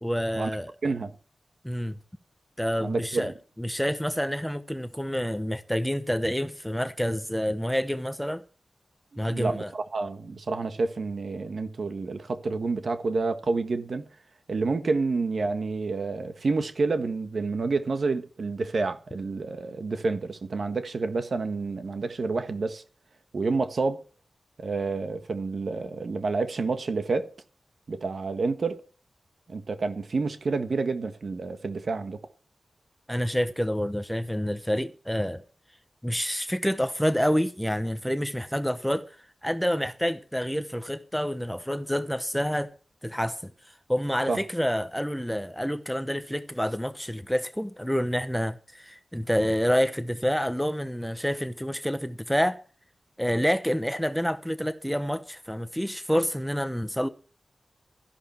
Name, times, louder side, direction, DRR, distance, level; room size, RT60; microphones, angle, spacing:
voice 1, 0.0-0.7 1.6-2.0 2.6-8.4 9.2-9.7 33.1-35.4 36.0-39.1 39.4-42.7 43.0-43.5 43.9-52.6 53.2-57.1, equal, ahead, 0.9 m, -28 dB
voice 2, 0.8-1.1 2.8-3.3 9.3-14.1 14.5-22.8 23.3-24.0 24.6-27.3 27.9-28.8 29.5-32.2 44.3-44.4, right 3 dB, 55° right, 1.5 m, -29 dB
13.5 x 11.0 x 4.5 m
wide cardioid pair, 140°, 0 cm